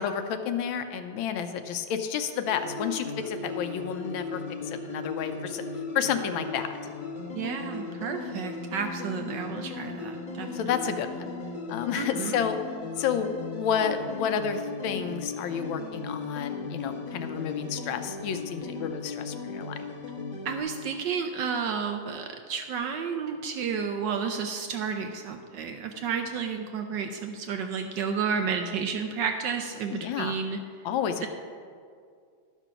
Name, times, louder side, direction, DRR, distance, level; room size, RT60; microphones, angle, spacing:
voice 1, 0.0-5.6 5.9-6.7 10.5-11.3 11.7-12.6 13.0-19.8 29.9-30.4 30.8-31.3, left 7 dB, 75° left, 8 dB, 1.4 m, -30 dB
sound 1, 2.5-20.6, left 4 dB, 40° left, 0.7 m, -37 dB
voice 2, 7.3-10.5 11.9-12.4 20.4-30.6, right 6 dB, 75° right, 5 dB, 1.1 m, -31 dB
11.5 x 6.0 x 5.7 m, 2.2 s
omnidirectional pair, 2.3 m